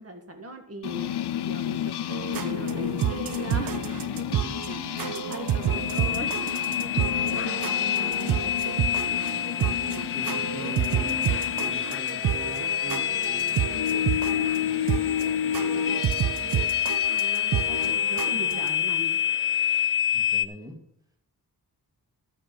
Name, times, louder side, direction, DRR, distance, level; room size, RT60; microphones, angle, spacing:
voice 1, 0.0-3.8 5.1-8.4 16.4-19.2, right 1 dB, 35° right, 6 dB, 1.7 m, -40 dB
sound 1, 0.8-18.0, left 10 dB, 80° left, 0.6 m, -32 dB
sound 2, 2.1-18.7, right 10 dB, 60° right, 0.5 m, -30 dB
sound 3, 5.7-20.5, left 10 dB, 35° left, 0.5 m, -28 dB
voice 2, 10.1-11.3 11.6-16.1 20.1-20.8, left 1 dB, 10° right, 3 dB, 1.9 m, -43 dB
12.5 x 7.3 x 5.4 m, 0.70 s
wide cardioid pair, 110°, 39 cm